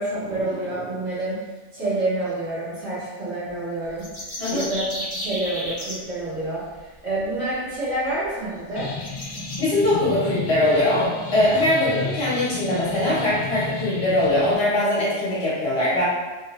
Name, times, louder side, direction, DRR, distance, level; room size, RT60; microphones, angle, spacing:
voice 1, 0.0-1.4 1.7-4.1 4.5-4.9 5.1-6.6 7.0-8.9, right 2 dB, 60° right, -12 dB, 1.9 m, -27 dB
sound 1, 3.9-5.9 7.7-7.8 8.2-8.3 9.0-9.6, equal, 25° left, 0.8 m, -32 dB
sound 2, 8.8-14.6, left 4 dB, 75° left, 0.9 m, -32 dB
voice 2, 9.6-16.0, left 1 dB, 55° left, -8 dB, 1.3 m, -21 dB
3.6 x 2.5 x 3.0 m, 1.2 s
omnidirectional pair, 1.3 m